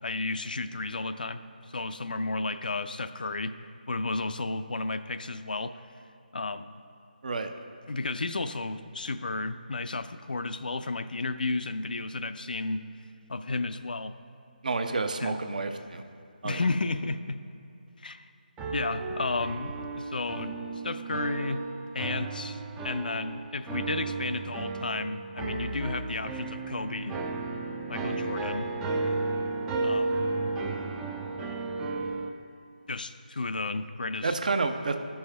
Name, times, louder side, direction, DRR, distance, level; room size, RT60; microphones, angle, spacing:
voice 1, 0.0-1.4 1.7-3.5 3.9-5.8 6.3-6.8 7.9-12.8 13.3-14.1 15.2-15.4 16.4-17.4 18.0-18.2 18.7-21.6 21.9-27.2 27.9-28.7 29.8-30.3 32.9-34.4, left 3 dB, 65° left, 11 dB, 0.4 m, -33 dB
voice 2, 14.6-16.0 16.4-16.6 34.2-35.0, right 3 dB, 55° right, 7 dB, 0.7 m, -29 dB
sound 1, 18.6-32.3, right 3 dB, 10° right, 0.3 m, -33 dB
13.0 x 5.5 x 3.3 m, 2.6 s
figure-of-eight pair, 155°, 5 cm